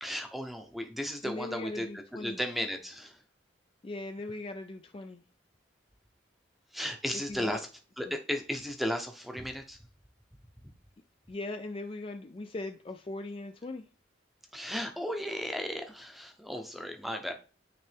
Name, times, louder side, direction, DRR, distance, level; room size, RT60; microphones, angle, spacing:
voice 1, 0.0-3.2 6.7-7.7 8.0-9.8 14.5-17.3, equal, ahead, 0.7 m, -35 dB
voice 2, 1.2-2.4 3.8-5.2 7.3-7.6 8.1-8.2 11.3-13.9, left 2 dB, 30° left, 0.4 m, -39 dB
9.3 x 3.2 x 3.4 m
head